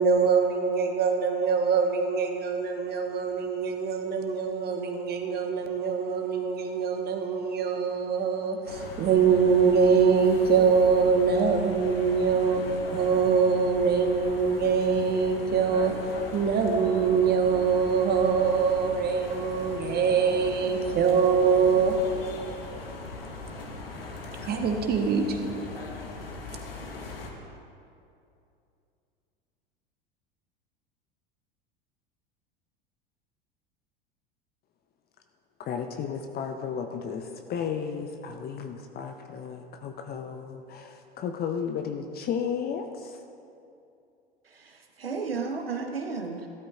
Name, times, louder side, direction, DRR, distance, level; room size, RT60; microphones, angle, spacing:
voice 1, 0.0-12.6 12.9-15.9 16.3-21.9 24.4-25.4, right 6 dB, 35° right, 3 dB, 1.3 m, -24 dB
sound 1, 8.7-27.3, left 2 dB, 75° left, 1.4 m, -39 dB
voice 2, 35.6-43.2, left 7 dB, 35° left, 6 dB, 0.7 m, -33 dB
voice 3, 44.4-46.5, right 4 dB, 80° right, 4 dB, 1.1 m, -33 dB
15.5 x 13.0 x 2.5 m, 2.6 s
figure-of-eight pair, 75°, 29 cm